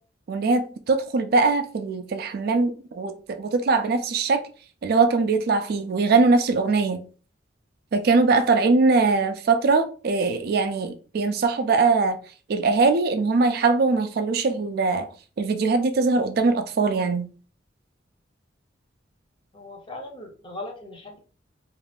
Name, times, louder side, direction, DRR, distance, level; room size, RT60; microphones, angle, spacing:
voice 1, 0.3-4.4 4.8-7.0 7.9-12.2 12.5-15.1 15.4-17.3, right 4 dB, 55° right, 0.3 m, -21 dB
voice 2, 19.5-21.2, left 2 dB, 25° left, 0.6 m, -38 dB
2.5 x 2.3 x 3.3 m
head